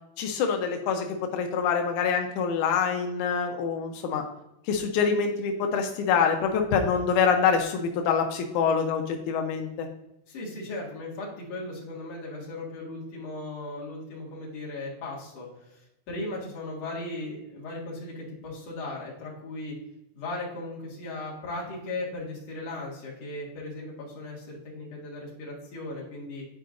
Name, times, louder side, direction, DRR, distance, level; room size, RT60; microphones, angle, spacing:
voice 1, 0.2-1.1 1.3-4.2 4.7-9.9, left 6 dB, 90° left, 3 dB, 1.7 m, -25 dB
voice 2, 10.3-19.8 20.1-26.4, left 2 dB, 50° left, -4 dB, 2.5 m, -37 dB
10.5 x 4.7 x 2.5 m, 0.88 s
omnidirectional pair, 4.4 m